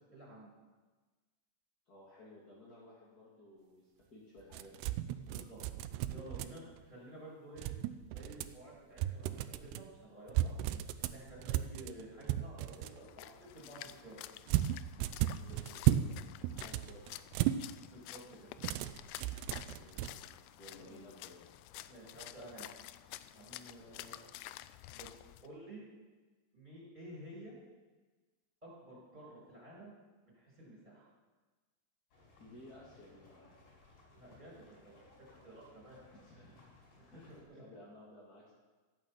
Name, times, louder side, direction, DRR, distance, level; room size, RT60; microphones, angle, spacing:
voice 1, 0.1-0.5 5.2-5.6 6.1-7.7 8.0-10.5 11.0-14.2 17.8-18.5 20.8-21.0 21.9-22.8 23.3-24.2 24.9-25.1 25.4-25.8 26.5-27.5 28.6-29.9 30.2-31.1 34.2-35.0 35.3-36.0 37.0-37.6, right 1 dB, 10° right, -6 dB, 5.9 m, -52 dB
voice 2, 1.9-4.8 15.3-17.5 19.7-21.4 23.7-24.2 32.4-33.5 36.1-36.7 37.1-38.5, left 1 dB, 30° left, -7 dB, 2.1 m, -56 dB
sound 1, 4.5-6.8 7.6-8.6 9.0-9.8 10.3-13.0 14.5-16.1 16.4-17.6 18.6-20.1, right 13 dB, 85° right, 2.7 m, -34 dB
Splash splatter, 12.7-25.5, left 15 dB, 85° left, 2.7 m, -50 dB
sound 2, 32.1-37.4, left 2 dB, 60° left, 5.9 m, -62 dB
14.5 x 9.1 x 7.4 m, 1.3 s
omnidirectional pair, 4.8 m